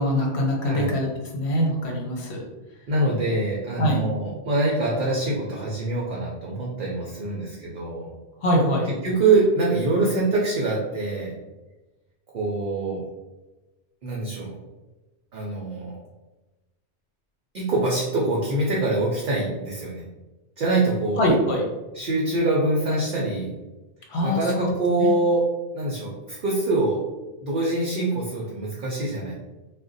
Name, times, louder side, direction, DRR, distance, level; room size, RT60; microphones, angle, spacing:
voice 1, 0.0-2.4 3.8-4.0 8.4-8.9 21.2-21.6 24.1-24.7 25.0-25.1, equal, 70° left, -1 dB, 1.0 m, -23 dB
voice 2, 2.9-8.1 9.0-11.3 12.3-13.0 14.0-14.5 15.3-15.9 17.5-20.0 20.6-21.2 21.9-23.5 24.2-25.4 25.7-27.0 27.4-29.4, right 2 dB, 55° right, -3 dB, 0.7 m, -24 dB
2.5 x 2.2 x 3.8 m, 1.1 s
omnidirectional pair, 1.2 m